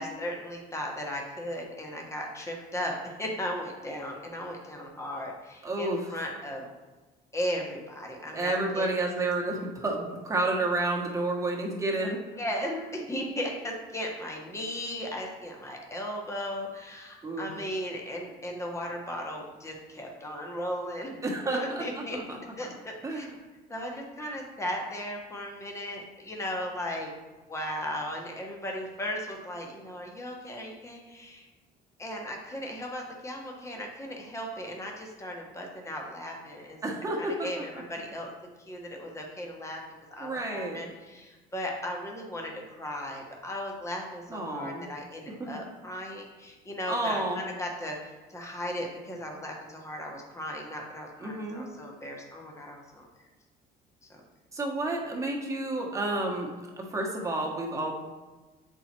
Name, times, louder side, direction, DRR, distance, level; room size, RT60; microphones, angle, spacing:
voice 1, 0.0-6.7 7.3-8.9 12.4-21.2 21.5-23.3 23.7-27.1 27.5-31.5 32.0-36.8 37.2-38.3 38.7-39.8 40.1-53.1 54.1-54.2, equal, 15° left, 0 dB, 1.4 m, -36 dB
voice 2, 5.6-6.2 8.3-12.2 17.2-17.5 21.2-22.4 23.0-23.3 36.8-37.4 37.7-37.8 40.2-40.8 44.3-44.9 45.4-45.5 46.9-47.4 51.2-51.7 54.5-58.0, right 2 dB, 20° right, -1 dB, 1.4 m, -30 dB
6.8 x 4.6 x 4.5 m, 1.2 s
cardioid pair, 110°, 17 cm